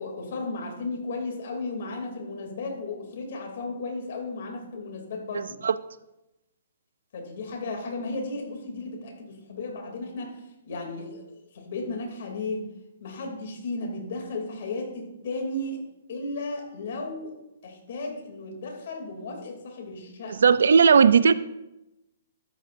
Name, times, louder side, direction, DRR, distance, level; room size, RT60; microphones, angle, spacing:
voice 1, 0.0-5.6 7.1-12.7 13.0-15.8 16.1-17.3 17.6-20.6, left 2 dB, 55° left, 1 dB, 2.8 m, -34 dB
voice 2, 5.3-5.7 20.4-21.3, right 6 dB, 80° right, 16 dB, 0.4 m, -17 dB
13.0 x 9.6 x 2.6 m, 0.92 s
hypercardioid pair, 165°, 0 cm